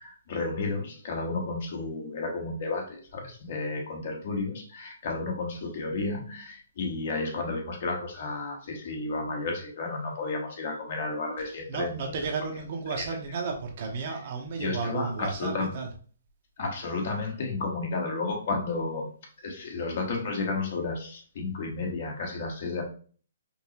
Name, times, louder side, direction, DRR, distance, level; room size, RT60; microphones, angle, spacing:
voice 1, 0.0-12.2 13.0-13.1 14.6-15.7 16.6-19.1 19.4-22.8, left 3 dB, 50° left, 1 dB, 1.3 m, -32 dB
voice 2, 11.4-15.9, right 4 dB, 50° right, 3 dB, 0.9 m, -33 dB
5.3 x 2.0 x 2.9 m, 0.42 s
hypercardioid pair, 150°, 0 cm